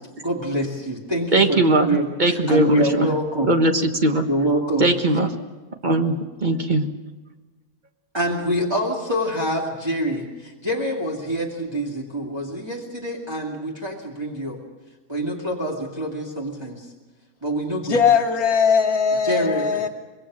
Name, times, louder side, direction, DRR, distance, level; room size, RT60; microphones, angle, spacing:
voice 1, 0.2-3.5 4.3-4.9 8.1-14.6 15.1-16.9 17.4-18.0 19.2-19.9, right 1 dB, 15° right, -3 dB, 2.6 m, -26 dB
voice 2, 1.3-3.1 3.5-4.3 4.8-5.3 5.8-6.1 6.4-6.9, right 1 dB, 35° right, 5 dB, 1.5 m, -19 dB
voice 3, 17.9-19.9, left 6 dB, 80° left, 0 dB, 1.6 m, -19 dB
25.5 x 21.5 x 6.3 m, 1.3 s
omnidirectional pair, 1.5 m